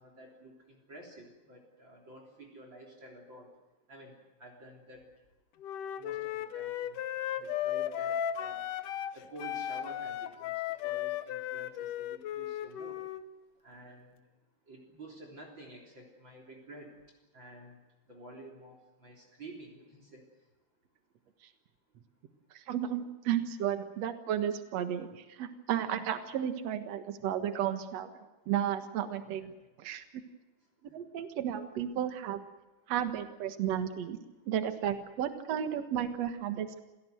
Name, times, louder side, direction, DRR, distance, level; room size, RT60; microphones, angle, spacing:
voice 1, 0.0-3.5 3.9-5.1 6.0-7.1 7.4-8.7 9.1-10.5 10.8-13.0 13.6-14.2 14.7-16.9 17.3-17.8 18.1-20.2 29.4-29.5 30.9-31.0, right 1 dB, 30° right, 2 dB, 3.8 m, -51 dB
Wind instrument woodwind instrument, 5.6-9.1 9.4-13.3, left 11 dB, 70° left, 2.1 m, -35 dB
voice 2, 22.7-28.1 28.5-29.5 29.8-30.0 30.9-32.4 32.9-34.2 34.5-36.8, right 10 dB, 55° right, 8 dB, 2.1 m, -33 dB
27.5 x 17.5 x 7.9 m, 1.1 s
omnidirectional pair, 4.6 m